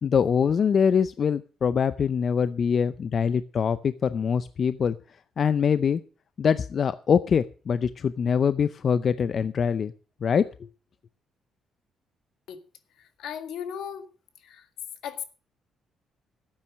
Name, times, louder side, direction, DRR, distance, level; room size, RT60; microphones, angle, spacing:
voice 1, 0.0-5.0 5.4-6.0 6.4-9.9 10.2-10.5, left 7 dB, 50° left, 14 dB, 0.6 m, -24 dB
voice 2, 13.0-14.0 14.4-14.7 15.0-15.2, left 8 dB, 80° left, 9 dB, 1.9 m, -36 dB
12.5 x 8.9 x 6.3 m, 0.38 s
cardioid pair, 90°, 0 cm